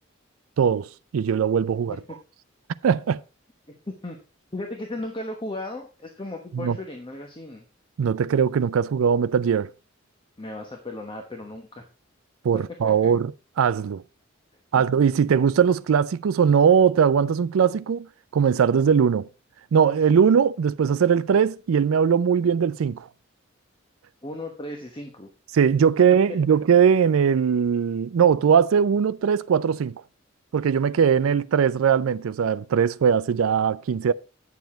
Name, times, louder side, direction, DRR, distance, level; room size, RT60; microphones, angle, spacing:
voice 1, 0.6-2.0 2.8-3.2 6.5-6.8 8.0-9.7 12.4-13.3 13.6-14.0 14.7-18.1 18.3-19.3 19.7-23.0 25.5-29.9 30.5-34.1, right 7 dB, 85° right, 0.4 m, -20 dB
voice 2, 3.7-4.2 4.5-7.6 10.4-11.8 12.5-12.9 14.7-14.8 24.2-25.3, left 1 dB, 25° left, 1.1 m, -36 dB
9.2 x 7.2 x 4.3 m
head